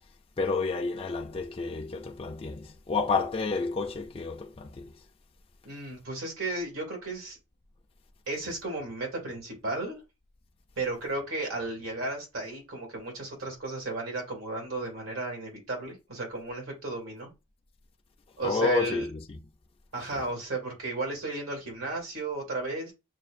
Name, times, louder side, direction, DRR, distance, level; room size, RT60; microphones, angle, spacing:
voice 1, 0.4-4.9 18.4-19.5 20.1-20.2, left 4 dB, 30° left, 0.4 m, -30 dB
voice 2, 5.6-7.4 8.3-10.0 10.8-17.3 18.4-19.1 19.9-22.9, right 2 dB, 80° right, 2.3 m, -34 dB
6.0 x 2.4 x 2.5 m
head